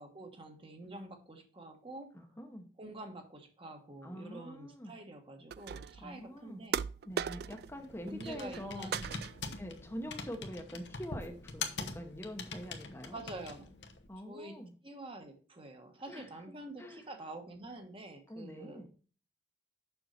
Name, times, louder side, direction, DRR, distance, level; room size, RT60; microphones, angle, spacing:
voice 1, 0.0-2.1 2.8-6.9 8.1-9.6 13.1-13.8 14.2-18.9, right 2 dB, 30° right, 4 dB, 1.2 m, -47 dB
voice 2, 2.1-2.7 4.0-4.9 6.0-6.6 7.1-8.9 9.6-13.2 14.1-14.7 16.1-16.3 16.8-17.0 18.3-18.9, equal, 15° left, 4 dB, 0.9 m, -45 dB
sound 1, 5.5-6.1 6.7-7.8 8.1-8.6 8.9-9.6, right 8 dB, 60° right, 0.3 m, -38 dB
Computer keyboard, 7.1-14.1, left 4 dB, 80° left, 1.0 m, -44 dB
7.0 x 6.2 x 4.2 m, 0.38 s
head